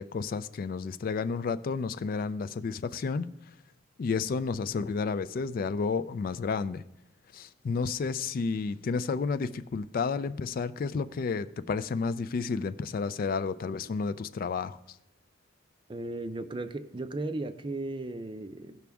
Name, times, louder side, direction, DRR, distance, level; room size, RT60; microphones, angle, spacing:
voice 1, 0.0-3.3 4.0-6.8 7.3-14.8, left 5 dB, 45° left, 13 dB, 0.3 m, -31 dB
voice 2, 15.9-18.8, right 2 dB, 25° right, 10 dB, 0.5 m, -36 dB
17.0 x 6.0 x 3.5 m, 0.84 s
head